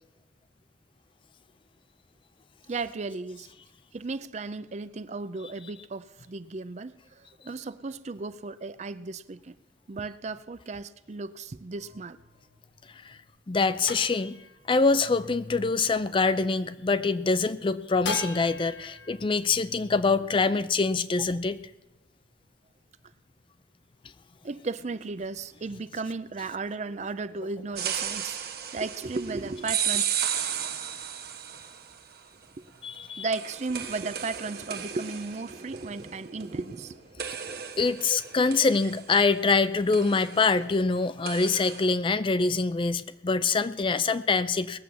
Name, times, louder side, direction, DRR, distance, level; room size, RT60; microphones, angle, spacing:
voice 1, 2.7-3.5 3.9-9.6 9.9-12.2 21.2-21.3 24.4-30.0 32.6-32.7 33.0-37.0 37.5-37.6 38.1-38.2 38.6-38.7, right 3 dB, 40° right, 0.5 m, -35 dB
sound 1, 11.8-17.1 18.0-21.4, left 3 dB, 75° left, 1.3 m, -42 dB
voice 2, 13.5-14.4 14.7-21.6 32.8-33.3 37.8-44.8, left 4 dB, 30° left, 0.4 m, -25 dB
sound 2, 27.8-32.0 33.3-36.8 37.2-39.6 39.9-40.4 41.3-41.9, right 9 dB, 55° right, 1.2 m, -34 dB
19.0 x 7.7 x 6.9 m
head